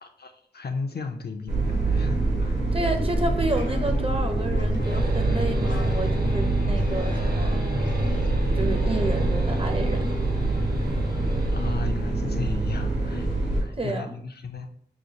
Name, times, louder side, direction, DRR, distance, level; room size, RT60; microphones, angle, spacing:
voice 1, 0.0-2.6 11.5-14.7, left 4 dB, 60° left, 6 dB, 0.5 m, -35 dB
sound 1, 1.5-13.6, right 2 dB, 75° right, 1.6 m, -25 dB
voice 2, 2.7-7.6 8.5-10.1 13.8-14.1, right 1 dB, 30° right, 5 dB, 0.6 m, -30 dB
sound 2, 2.8-9.1, left 1 dB, 80° left, 0.9 m, -40 dB
sound 3, 4.8-11.7, equal, 55° right, 1.0 m, -31 dB
6.2 x 2.3 x 2.8 m, 0.62 s
wide cardioid pair, 60°, 19 cm